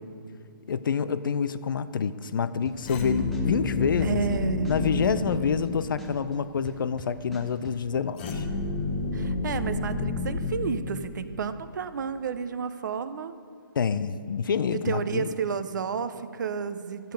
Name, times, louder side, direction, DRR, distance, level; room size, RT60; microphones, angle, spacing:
voice 1, 0.7-4.2 4.7-8.5 13.8-15.3, left 6 dB, 65° left, 14 dB, 0.5 m, -27 dB
sound 1, 2.6-3.0 3.3-5.7 6.0-7.8, equal, ahead, 0.9 m, -43 dB
sound 2, 2.8-6.2 8.2-11.4, left 3 dB, 25° left, 0.9 m, -30 dB
voice 2, 4.0-4.7 9.1-13.4 14.7-17.1, right 6 dB, 55° right, 12 dB, 0.6 m, -31 dB
13.0 x 7.7 x 5.2 m, 2.3 s
hypercardioid pair, 155°, 12 cm